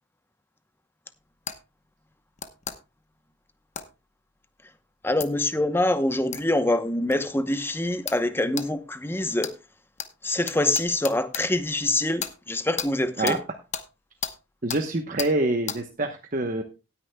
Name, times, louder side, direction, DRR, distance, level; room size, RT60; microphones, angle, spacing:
sound 1, 1.5-1.6 2.4-2.8 3.8-3.9 5.2-5.3 6.3-6.4 7.1-7.2 8.1-8.2 8.6-8.7 9.4-9.6 10.0-10.1 10.5-11.4 12.2-12.3 12.8-12.9 13.3-13.4 13.7-13.9 14.2-14.4 14.7-14.8 15.2-15.3 15.7-15.8, left 8 dB, 40° left, 1.0 m, -33 dB
voice 1, 5.0-9.5 10.2-13.4, left 1 dB, 10° left, 0.8 m, -25 dB
voice 2, 14.6-16.6, right 2 dB, 45° right, 1.0 m, -26 dB
18.0 x 9.7 x 2.2 m
head